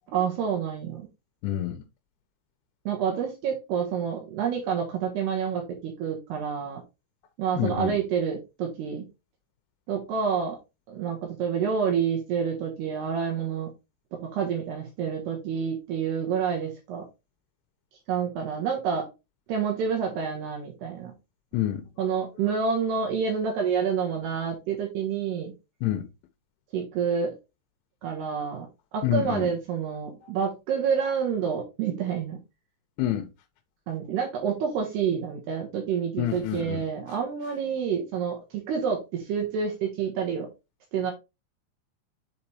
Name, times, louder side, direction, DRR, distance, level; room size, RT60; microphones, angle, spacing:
voice 1, 0.1-1.1 2.9-6.8 7.4-9.1 9.9-10.6 10.9-13.7 14.2-17.0 18.1-19.1 19.5-21.1 22.0-25.5 26.7-27.3 28.0-32.4 33.9-40.5 40.9-41.1, right 7 dB, 70° right, 2.9 m, -28 dB
voice 2, 1.4-1.8 7.6-8.0 21.5-21.9 25.8-26.1 29.0-29.5 30.2-30.3 33.0-33.3 36.2-36.8, left 13 dB, 85° left, 3.0 m, -28 dB
7.1 x 5.0 x 3.0 m
omnidirectional pair, 5.5 m